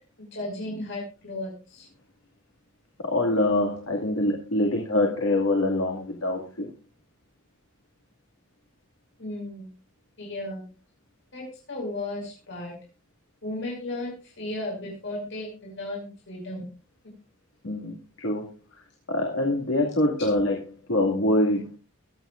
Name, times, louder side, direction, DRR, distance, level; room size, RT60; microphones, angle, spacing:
voice 1, 0.2-1.9 9.2-9.7 10.2-10.6 11.3-12.7 13.4-16.6 20.2-20.3, left 1 dB, 60° left, -1 dB, 5.6 m, -35 dB
voice 2, 3.0-6.7 17.6-20.6 20.9-21.8, left 1 dB, 80° left, 0 dB, 2.2 m, -25 dB
23.0 x 9.2 x 2.5 m, 0.33 s
head